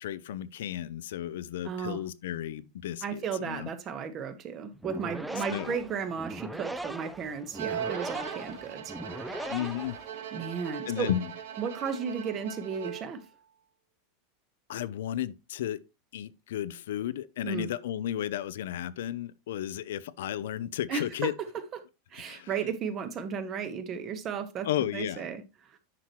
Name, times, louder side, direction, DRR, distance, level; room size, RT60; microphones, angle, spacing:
voice 1, 0.0-3.7 5.5-5.8 9.5-10.0 10.9-11.3 14.7-15.8 16.1-21.3 22.1-22.5 24.6-25.3, left 11 dB, 90° left, 0.6 m, -33 dB
voice 2, 1.6-2.0 3.0-9.5 10.3-11.1 11.6-13.2 17.4-17.7 20.9-21.3 22.1-24.7 24.9-25.4, right 6 dB, 30° right, 1.2 m, -34 dB
sound 1, 4.7-10.5, right 1 dB, 5° right, 0.6 m, -39 dB
Bowed string instrument, 7.5-13.3, right 9 dB, 80° right, 1.2 m, -39 dB
9.8 x 6.0 x 3.1 m
supercardioid pair, 160°, 0 cm